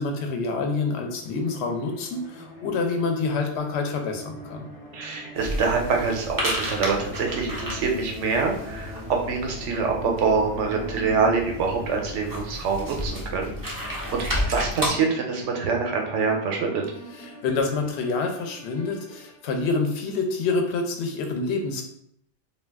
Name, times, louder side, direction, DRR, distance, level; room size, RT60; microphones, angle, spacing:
voice 1, 0.0-4.7 17.2-21.8, left 3 dB, 70° left, 3 dB, 0.8 m, -27 dB
sound 1, 1.0-19.7, right 1 dB, 35° left, 0.8 m, -43 dB
voice 2, 4.9-16.8, right 4 dB, 85° right, 2 dB, 1.0 m, -25 dB
sound 2, 5.3-14.9, equal, 25° right, 0.5 m, -32 dB
2.4 x 2.3 x 3.4 m, 0.69 s
omnidirectional pair, 1.2 m